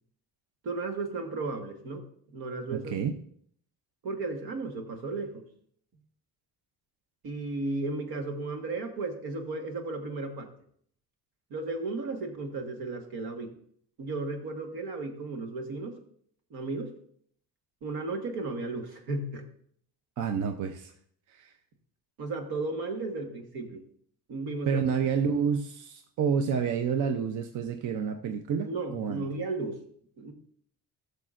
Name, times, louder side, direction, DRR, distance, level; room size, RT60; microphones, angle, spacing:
voice 1, 0.6-3.1 4.0-5.5 7.2-10.5 11.5-13.5 14.0-16.0 16.5-16.9 17.8-19.4 22.2-23.8 24.3-24.8 28.6-29.8 30.2-30.3, right 3 dB, 75° right, 5 dB, 1.5 m, -34 dB
voice 2, 2.7-3.1 20.2-20.9 21.3-21.5 24.7-29.3, right 6 dB, 55° right, 7 dB, 0.6 m, -29 dB
16.0 x 6.6 x 2.5 m, 0.64 s
cardioid pair, 160°, 37 cm